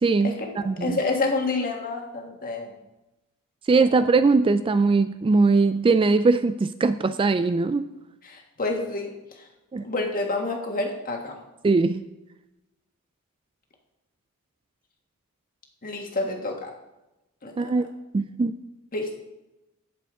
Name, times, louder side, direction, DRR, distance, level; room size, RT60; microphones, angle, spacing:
voice 1, 0.0-0.3 0.7-1.0 3.7-7.8 9.7-9.9 11.6-12.0 17.6-17.9 18.1-18.6, right 3 dB, 25° right, 11 dB, 0.3 m, -20 dB
voice 2, 0.8-2.7 3.8-4.0 8.2-9.1 9.4-9.5 9.8-11.4 15.8-16.7 17.4-17.5 18.9-19.2, left 3 dB, 40° left, 2 dB, 1.6 m, -28 dB
17.0 x 6.8 x 3.7 m, 0.98 s
head